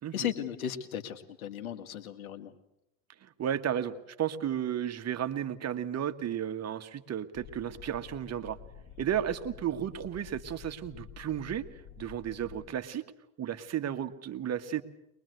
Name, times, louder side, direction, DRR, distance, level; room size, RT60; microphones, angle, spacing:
voice 1, 0.1-2.5, left 9 dB, 90° left, 9 dB, 2.1 m, -36 dB
voice 2, 3.2-8.6 9.0-11.7 12.0-13.0 13.4-14.8, right 10 dB, 40° right, 8 dB, 1.8 m, -33 dB
sound 1, 7.3-12.7, left 8 dB, 45° left, 5.5 m, -49 dB
23.0 x 21.5 x 8.1 m, 0.82 s
hypercardioid pair, 80°, 41 cm